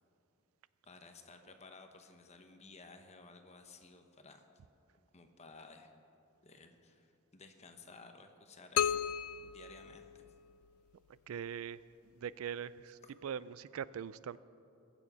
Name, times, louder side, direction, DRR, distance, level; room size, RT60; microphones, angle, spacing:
voice 1, 0.8-4.5 5.1-5.9 6.4-9.0 9.4-10.2, left 3 dB, 30° left, 6 dB, 1.0 m, -56 dB
sound 1, 8.8-10.7, left 9 dB, 85° left, 0.3 m, -35 dB
voice 2, 11.3-11.8 12.2-14.4, right 8 dB, 80° right, 18 dB, 0.4 m, -42 dB
21.5 x 7.3 x 5.5 m, 2.7 s
head